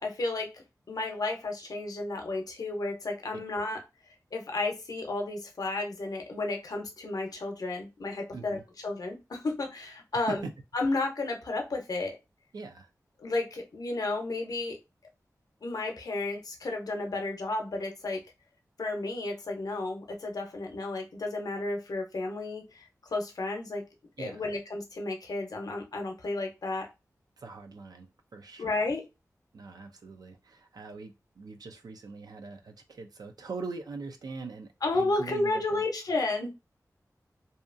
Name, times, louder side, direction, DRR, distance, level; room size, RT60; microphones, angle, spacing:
voice 1, 0.0-3.8 4.3-10.5 10.7-12.2 13.2-14.8 15.6-18.2 18.8-23.8 24.2-26.9 28.6-29.0 34.8-36.5, left 2 dB, 75° left, 0.6 m, -32 dB
voice 2, 8.3-8.6 10.1-10.5 12.5-12.9 24.2-24.5 27.4-28.9 29.5-35.8 36.4-36.5, right 4 dB, 85° right, 0.5 m, -42 dB
2.7 x 2.3 x 2.5 m
wide cardioid pair, 95°, 6 cm